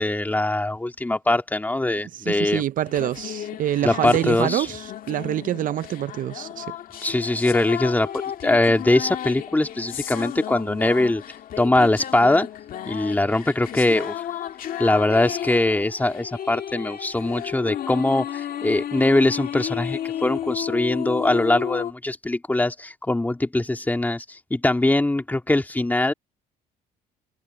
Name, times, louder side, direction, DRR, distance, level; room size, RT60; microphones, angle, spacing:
voice 1, 0.0-2.6 3.8-4.7 7.0-11.2 11.6-12.5 12.9-14.2 14.8-26.1, left 2 dB, 10° left, 2.5 m, -22 dB
voice 2, 2.1-6.7, right 12 dB, 55° right, 0.5 m, -26 dB
sound 1, 2.9-21.9, left 10 dB, 55° left, 1.9 m, -33 dB
cardioid pair, 110°, 17 cm